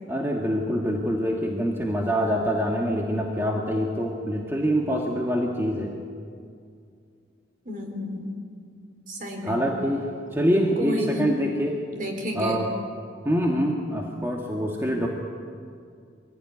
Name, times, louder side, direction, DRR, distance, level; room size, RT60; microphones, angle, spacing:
voice 1, 0.1-5.9 9.4-11.8 12.3-12.7 13.2-15.1, equal, 10° right, 0 dB, 1.6 m, -25 dB
voice 2, 7.7-8.4 9.1-9.6 10.8-11.3 11.9-12.6, left 1 dB, 45° right, 3 dB, 3.7 m, -31 dB
24.0 x 16.0 x 9.6 m, 2.3 s
head